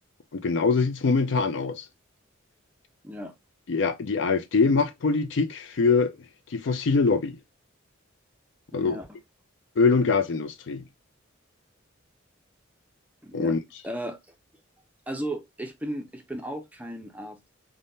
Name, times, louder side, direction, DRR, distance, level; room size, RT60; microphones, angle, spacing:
voice 1, 0.3-1.8 3.7-6.1 6.5-7.4 8.7-9.0 9.8-10.8 13.3-13.6, left 4 dB, 65° left, 0.5 m, -23 dB
voice 2, 8.7-9.1 13.2-13.6 13.8-14.2 15.1-17.5, right 1 dB, 10° right, 0.4 m, -35 dB
3.5 x 2.1 x 2.6 m
head